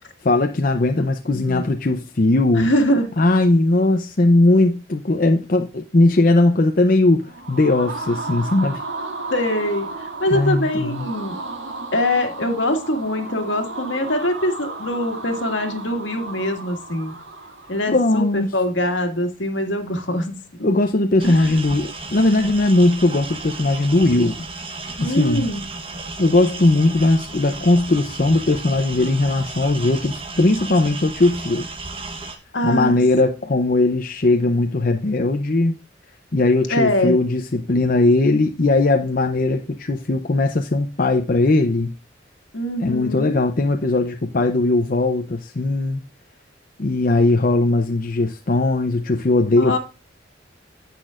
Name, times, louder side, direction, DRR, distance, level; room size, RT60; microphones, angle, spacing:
voice 1, 0.2-2.7 3.2-8.8 10.3-11.0 17.9-18.5 20.6-24.3 25.0-25.5 26.2-31.7 32.6-35.7 36.3-41.9 42.8-46.0 46.8-49.8, left 2 dB, 45° left, 0.7 m, -19 dB
voice 2, 1.0-1.6 2.5-3.1 9.3-11.4 11.9-17.1 17.7-20.4 21.2-21.5 25.0-25.7 32.5-33.0 36.7-37.1 42.5-43.4 49.6-49.8, left 1 dB, 75° left, 2.0 m, -23 dB
sound 1, 7.2-18.1, right 3 dB, 75° right, 1.9 m, -34 dB
sound 2, 21.2-32.4, right 3 dB, 30° right, 1.1 m, -34 dB
10.5 x 8.2 x 2.5 m
head